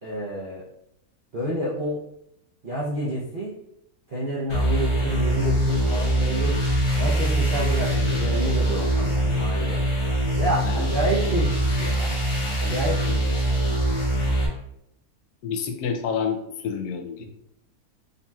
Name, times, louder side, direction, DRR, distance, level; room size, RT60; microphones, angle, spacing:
voice 1, 0.0-0.6 1.3-2.0 2.6-3.6 4.1-6.6 7.0-9.8 10.4-12.2 12.6-13.3 17.2-17.3, right 1 dB, 50° right, -6 dB, 0.7 m, -29 dB
sound 1, 4.5-14.5, right 1 dB, 50° left, 1.2 m, -23 dB
voice 2, 15.4-17.3, left 6 dB, 80° left, 5 dB, 1.1 m, -28 dB
5.2 x 2.8 x 2.3 m, 0.78 s
omnidirectional pair, 1.6 m